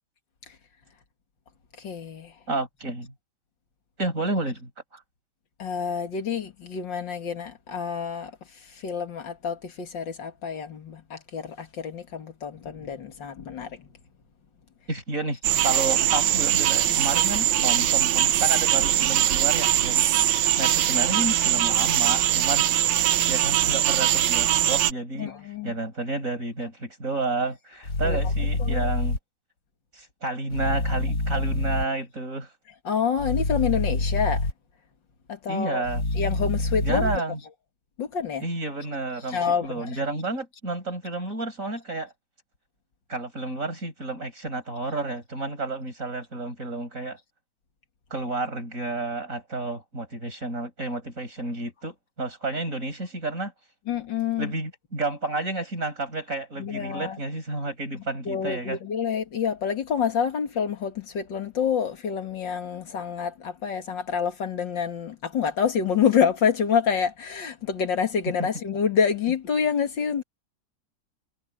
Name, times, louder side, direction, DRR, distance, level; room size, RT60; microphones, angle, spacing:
voice 1, 1.8-2.3 5.6-8.3 8.7-13.9 25.2-25.7 28.0-28.2 28.6-28.8 32.8-34.5 35.3-35.9 36.2-37.1 38.0-38.5 39.3-40.0 53.9-54.5 56.6-57.2 58.3-70.2, left 7 dB, 85° left, 2.8 m, -27 dB
voice 2, 2.5-3.1 4.0-5.0 14.9-25.3 25.6-29.2 29.9-32.5 35.5-36.0 36.8-37.4 38.4-42.1 43.1-47.2 48.1-53.5 54.4-58.8 68.4-68.5, right 2 dB, 45° right, 6.7 m, -31 dB
sound 1, 15.4-24.9, right 12 dB, 90° right, 1.5 m, -22 dB
sound 2, 27.8-29.2 30.5-31.8 33.2-34.5 35.8-37.2, left 2 dB, 60° left, 2.7 m, -26 dB
omnidirectional pair, 1.9 m